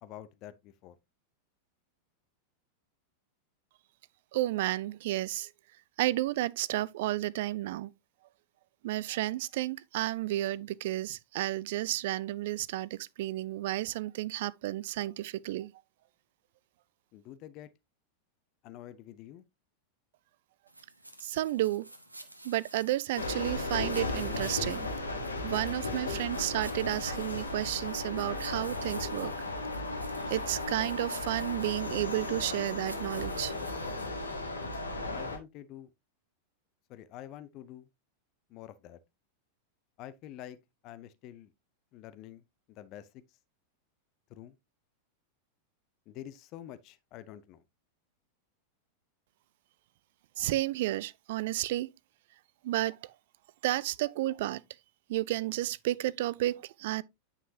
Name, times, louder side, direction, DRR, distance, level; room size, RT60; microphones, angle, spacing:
voice 1, 0.0-1.0 17.1-17.7 18.6-19.4 35.1-35.9 36.9-37.9 38.5-39.0 40.0-40.6 40.8-41.5 41.9-42.4 42.7-43.1 44.3-44.5 46.1-47.6, left 12 dB, 40° left, 0.6 m, -47 dB
voice 2, 4.3-5.5 6.0-7.9 8.8-15.7 21.2-21.9 22.4-24.9 25.4-29.3 30.3-33.5 50.4-51.9 52.6-53.0 53.6-54.6 55.1-57.0, right 15 dB, 55° right, 0.4 m, -32 dB
sound 1, 20.7-34.1, right 1 dB, 85° right, 1.1 m, -51 dB
sound 2, 23.1-35.4, left 2 dB, 80° left, 1.5 m, -35 dB
9.3 x 5.5 x 2.8 m
figure-of-eight pair, 90°, 0 cm